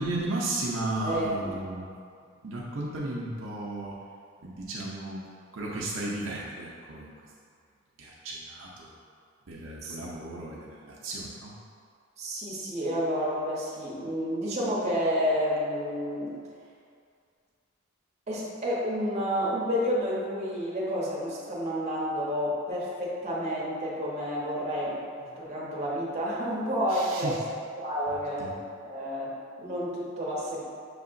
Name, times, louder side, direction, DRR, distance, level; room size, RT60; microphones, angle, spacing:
voice 1, 0.0-1.9 2.4-3.9 4.4-5.2 5.5-7.3 8.0-9.0 9.5-11.5 26.9-27.4 28.1-28.6, right 2 dB, 70° right, -5 dB, 0.6 m, -34 dB
voice 2, 1.0-1.5 9.8-10.0 12.2-16.4 18.3-27.4 27.8-28.5 28.8-30.6, equal, 35° right, -6 dB, 0.9 m, -30 dB
6.3 x 2.8 x 2.5 m, 2.2 s
head